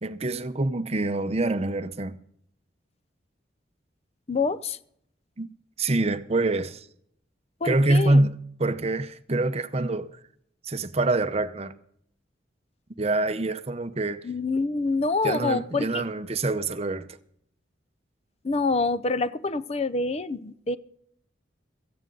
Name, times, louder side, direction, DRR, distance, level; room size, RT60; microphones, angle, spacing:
voice 1, 0.0-2.2 5.4-5.5 5.8-6.9 7.6-10.2 10.6-11.7 13.0-14.3 15.2-17.1, right 2 dB, 35° right, 0.7 m, -25 dB
voice 2, 4.3-4.8 7.6-8.3 14.2-16.0 18.4-20.8, left 3 dB, 35° left, 0.6 m, -26 dB
17.0 x 14.5 x 3.9 m
head